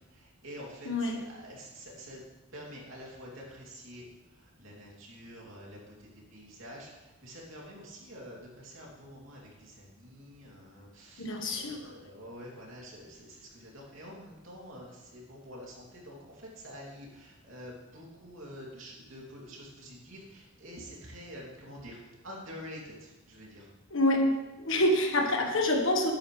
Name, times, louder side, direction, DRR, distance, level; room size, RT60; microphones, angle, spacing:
voice 1, 0.1-2.2 2.5-23.7, equal, 65° right, -3 dB, 3.0 m, -47 dB
voice 2, 0.8-1.2 11.2-11.9 23.9-24.3 24.6-26.1, left 1 dB, 60° left, 2 dB, 1.5 m, -26 dB
11.5 x 10.0 x 3.4 m, 1.1 s
head